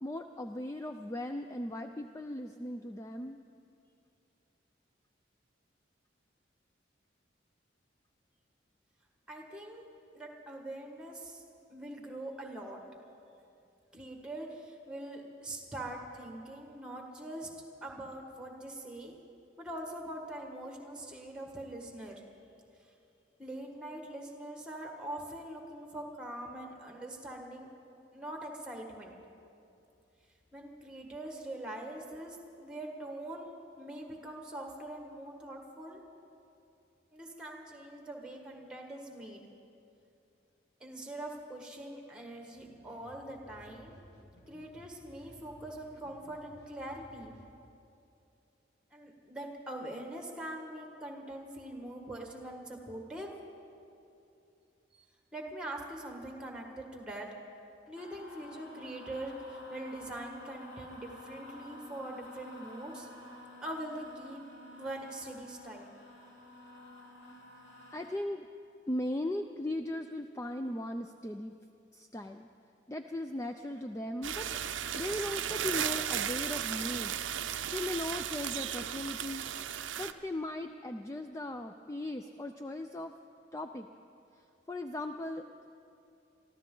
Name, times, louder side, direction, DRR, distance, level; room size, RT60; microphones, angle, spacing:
voice 1, 0.0-3.4 67.9-68.5 68.9-71.5 71.9-72.5 72.9-77.1 77.7-79.5 80.0-83.1 83.5-83.9 84.3-85.6, left 1 dB, 15° left, 6 dB, 0.3 m, -38 dB
voice 2, 9.3-9.9 10.1-11.4 11.7-12.8 13.9-17.5 17.8-19.2 19.6-22.2 23.4-27.7 28.1-29.2 30.5-33.5 33.8-36.0 37.1-39.5 40.8-44.0 44.5-47.3 48.9-53.3 54.9-55.0 55.3-57.3 57.9-63.1 63.6-64.4 64.7-65.9, right 1 dB, 5° right, 1 dB, 1.5 m, -43 dB
sound 1, 42.5-47.5, equal, 60° left, 1.8 m, -57 dB
sound 2, 57.9-68.2, left 1 dB, 80° left, 2.8 m, -51 dB
sound 3, 74.2-80.1, right 10 dB, 90° right, 0.5 m, -35 dB
23.5 x 14.5 x 3.8 m, 2.7 s
head